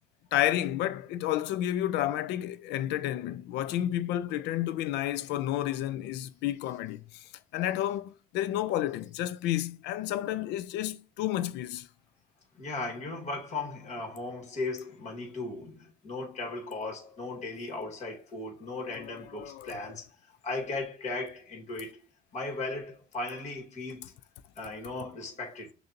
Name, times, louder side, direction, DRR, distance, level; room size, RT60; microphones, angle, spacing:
voice 1, 0.3-7.3 7.5-11.9 18.9-19.8, left 13 dB, 90° left, 0.5 m, -31 dB
voice 2, 12.5-20.1 20.4-22.0 22.3-24.1 24.6-25.7, left 3 dB, 45° left, 2.0 m, -37 dB
6.4 x 2.7 x 2.9 m
cardioid pair, 110°, 17 cm